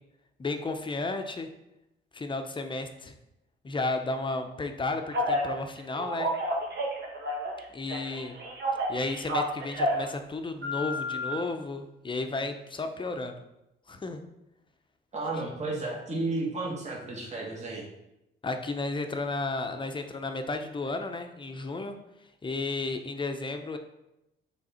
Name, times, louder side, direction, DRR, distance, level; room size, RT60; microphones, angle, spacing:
voice 1, 0.4-1.5 2.1-3.1 3.6-6.3 7.7-8.4 8.9-13.4 13.9-14.2 18.4-22.0 22.4-23.8, left 3 dB, 25° left, 6 dB, 0.7 m, -33 dB
Telephone, 5.1-5.5 6.0-7.6 7.9-10.1 10.6-11.3, equal, 55° right, 1.4 m, -30 dB
voice 2, 15.1-17.8, right 2 dB, 35° right, -3 dB, 1.4 m, -32 dB
6.2 x 3.5 x 4.3 m, 0.90 s
cardioid pair, 90°, 20 cm